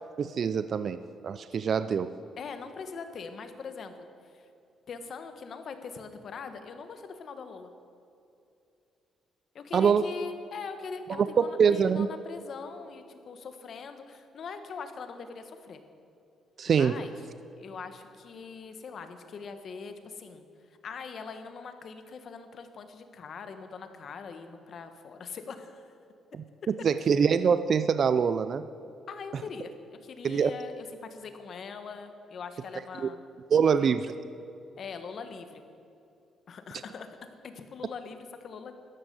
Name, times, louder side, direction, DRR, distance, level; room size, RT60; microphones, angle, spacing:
voice 1, 0.2-2.1 9.7-10.0 11.2-12.1 16.6-17.0 26.7-28.7 30.2-30.5 33.0-33.1 33.5-34.1, right 6 dB, 55° right, 13 dB, 0.5 m, -24 dB
voice 2, 2.4-4.5 4.9-7.7 9.5-15.8 16.7-17.1 17.6-20.4 20.8-25.9 29.1-29.7 30.0-33.2 33.6-33.9 34.8-35.6 36.5-37.2 37.4-38.7, left 5 dB, 55° left, 8 dB, 1.4 m, -42 dB
13.0 x 10.5 x 7.8 m, 2.7 s
cardioid pair, 90°, 0 cm